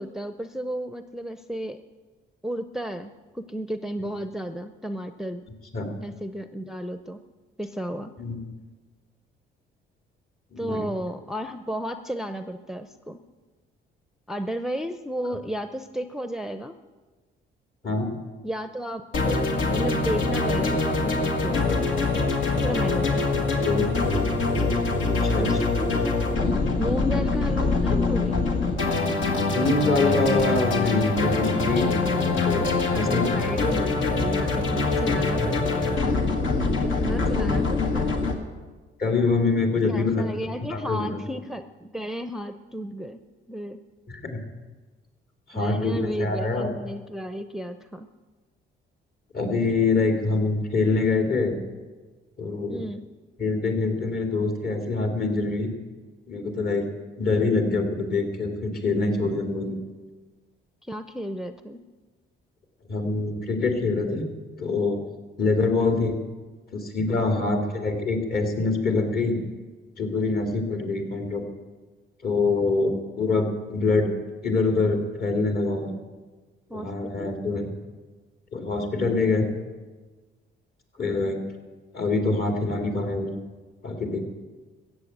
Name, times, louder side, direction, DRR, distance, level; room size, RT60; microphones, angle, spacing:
voice 1, 0.0-1.8 2.4-5.4 6.0-7.2 7.6-8.1 10.6-13.2 14.3-16.7 18.4-19.4 19.7-21.9 22.6-23.2 25.4-26.5 26.8-28.4 32.9-36.2 36.8-38.2 39.9-43.2 43.5-43.8 45.5-48.1 52.7-53.0 60.8-61.8 65.7-65.9 67.4-67.6 76.7-77.3 81.0-81.3, equal, ahead, 9 dB, 0.6 m, -33 dB
voice 2, 10.5-10.8 17.8-18.1 23.6-23.9 25.2-25.5 29.5-33.4 35.4-35.8 39.0-40.3 40.7-41.2 44.1-44.4 45.5-46.7 49.3-51.6 52.4-52.8 53.4-55.7 56.3-56.9 57.2-59.8 62.9-64.3 64.6-65.0 65.4-66.2 66.7-69.4 70.0-71.5 72.2-74.1 74.4-75.9 76.7-77.7 78.5-79.5 81.0-81.4 81.9-83.3 83.8-84.2, left 3 dB, 50° left, 4 dB, 2.8 m, -25 dB
sound 1, 19.1-38.3, left 3 dB, 75° left, 1.9 m, -24 dB
14.5 x 8.2 x 8.0 m, 1.3 s
cardioid pair, 90°, 20 cm